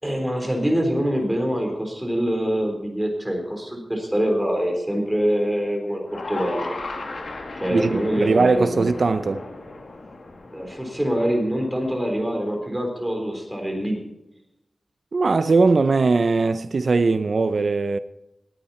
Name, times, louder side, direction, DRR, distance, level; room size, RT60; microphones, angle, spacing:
voice 1, 0.0-6.7 7.5-8.9 10.5-14.0, equal, 10° right, 3.8 m, -25 dB
sound 1, 6.0-12.3, left 2 dB, 65° left, 2.3 m, -36 dB
voice 2, 7.7-9.4 15.1-18.0, right 3 dB, 60° right, 0.5 m, -20 dB
19.0 x 8.7 x 4.2 m
wide cardioid pair, 95°, 0 cm